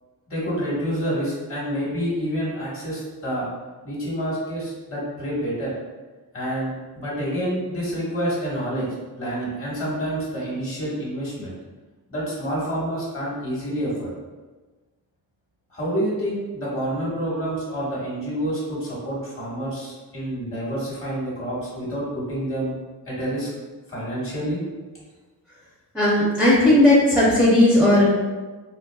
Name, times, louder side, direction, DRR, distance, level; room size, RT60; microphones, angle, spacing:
voice 1, 0.3-3.5 3.8-5.7 6.3-8.9 9.2-11.5 12.1-14.1 15.7-22.7 23.1-23.5 23.9-24.6, equal, 35° left, -6 dB, 1.3 m, -28 dB
voice 2, 25.9-28.1, left 1 dB, 5° right, -8 dB, 0.6 m, -16 dB
4.0 x 3.0 x 2.3 m, 1.3 s
wide cardioid pair, 145°, 39 cm